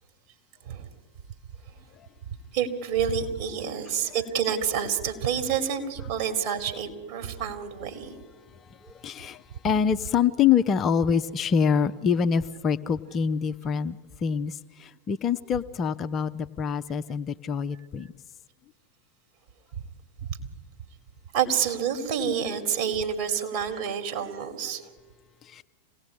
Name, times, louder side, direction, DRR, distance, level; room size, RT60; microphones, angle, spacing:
voice 1, 2.5-8.2 21.3-24.9, right 8 dB, 45° right, 5 dB, 3.6 m, -28 dB
voice 2, 8.8-18.1 25.5-25.6, left 7 dB, 25° left, 10 dB, 0.7 m, -25 dB
26.5 x 18.0 x 9.7 m, 1.4 s
figure-of-eight pair, 90°, 0 cm